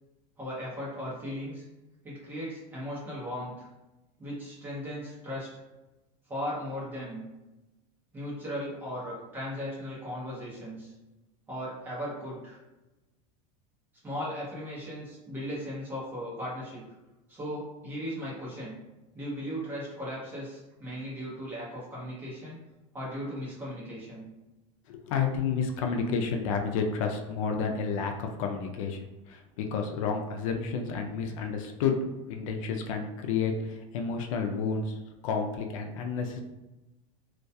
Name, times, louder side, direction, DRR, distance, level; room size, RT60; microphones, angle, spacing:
voice 1, 0.4-1.6 2.0-3.7 4.2-5.5 6.3-7.2 8.1-10.9 11.5-12.6 14.0-16.8 17.3-18.7 19.1-22.6 22.9-24.3, equal, 10° right, -8 dB, 0.7 m, -37 dB
voice 2, 24.9-32.0 32.3-35.0 35.2-36.4, left 5 dB, 75° left, 4 dB, 0.4 m, -30 dB
2.2 x 2.2 x 2.6 m, 1.0 s
supercardioid pair, 180°, 17 cm